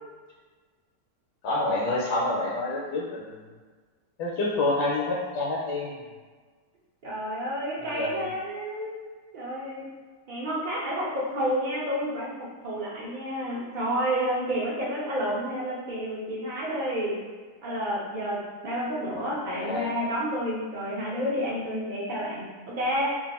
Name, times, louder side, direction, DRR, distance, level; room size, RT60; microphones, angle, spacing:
voice 1, 1.4-3.4 4.2-6.0 7.9-8.3 19.2-19.9, left 2 dB, 80° left, -4 dB, 1.2 m, -28 dB
voice 2, 7.0-9.0 9.3-9.8 10.3-12.3 12.6-17.2 17.6-23.1, equal, 65° right, -5 dB, 0.4 m, -30 dB
2.9 x 2.5 x 4.0 m, 1.5 s
omnidirectional pair, 1.8 m